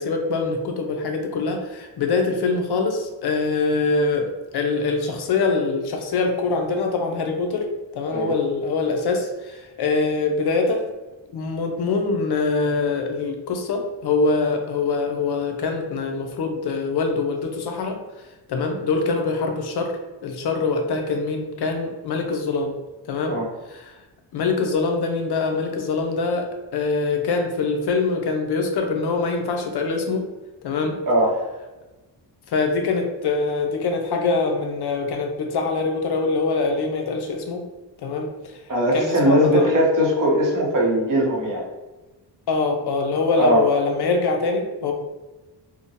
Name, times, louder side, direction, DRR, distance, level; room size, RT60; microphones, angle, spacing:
voice 1, 0.0-4.3 4.5-7.7 7.9-10.9 11.3-18.0 18.5-19.9 20.2-22.7 23.1-23.4 23.7-24.0 24.3-30.3 30.6-31.0 32.5-37.6 38.0-38.6 38.9-39.8 42.5-44.9, left 4 dB, 60° left, 3 dB, 0.5 m, -24 dB
voice 2, 38.7-41.6 43.4-43.6, equal, 45° right, -2 dB, 0.8 m, -19 dB
2.7 x 2.1 x 2.7 m, 1.1 s
cardioid pair, 115°, 46 cm